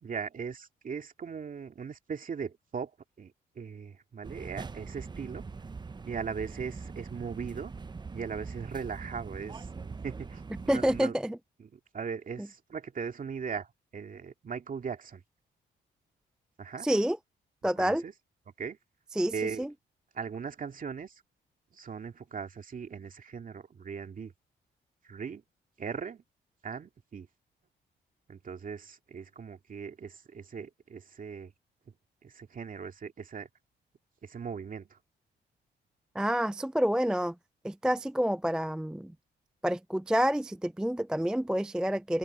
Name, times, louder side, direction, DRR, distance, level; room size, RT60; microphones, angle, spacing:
voice 1, 0.0-2.9 3.2-5.4 6.0-7.7 8.1-11.2 11.6-15.2 16.6-16.9 17.8-18.1 18.6-18.8 19.3-19.6 20.1-21.2 21.7-24.3 25.0-25.4 25.8-26.2 26.6-27.3 28.3-31.5 32.2-33.5 34.2-35.0, right 6 dB, 45° right, 2.4 m, -39 dB
sound 1, 4.2-11.0, right 4 dB, 20° right, 0.7 m, -42 dB
voice 2, 10.7-11.4 12.4-12.5 16.8-17.2 17.6-18.0 19.2-19.3 19.6-19.7 36.1-37.4 37.6-39.1 39.6-42.2, equal, 5° right, 0.3 m, -28 dB
open air
cardioid pair, 90°, 20 cm